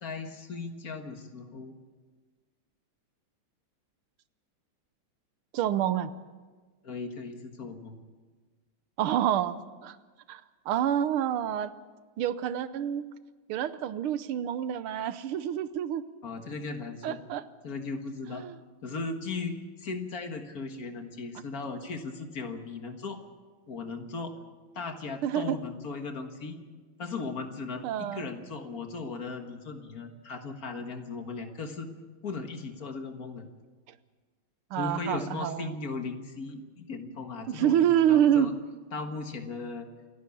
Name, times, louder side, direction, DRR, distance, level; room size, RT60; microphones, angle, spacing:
voice 1, 0.0-1.8 6.8-8.0 16.2-17.2 17.6-18.4 18.8-23.2 23.7-24.3 24.8-26.6 27.0-31.9 32.2-33.5 34.8-38.5 38.9-39.9, left 4 dB, 45° left, 6 dB, 2.0 m, -37 dB
voice 2, 5.5-6.1 9.0-10.0 10.3-10.4 10.7-11.7 12.2-13.0 13.5-16.1 17.0-17.4 18.3-18.6 25.2-25.6 27.8-28.3 34.7-35.8 37.5-38.5, right 10 dB, 85° right, 14 dB, 1.7 m, -27 dB
27.5 x 11.5 x 8.4 m, 1.4 s
omnidirectional pair, 2.3 m